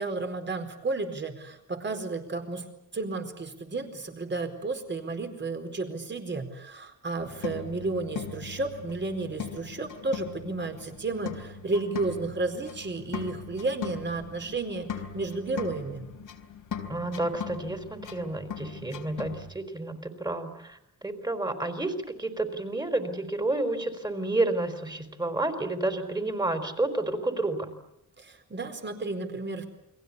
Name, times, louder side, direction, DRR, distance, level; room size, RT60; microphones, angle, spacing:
voice 1, 0.0-2.6 2.9-14.9 15.1-16.1 28.2-29.7, right 3 dB, 35° right, 6 dB, 4.5 m, -32 dB
sound 1, 7.2-19.5, left 6 dB, 90° left, 4.0 m, -40 dB
voice 2, 16.9-27.7, right 2 dB, 15° right, 7 dB, 4.2 m, -30 dB
29.5 x 23.0 x 8.5 m, 0.82 s
wide cardioid pair, 125°, 32 cm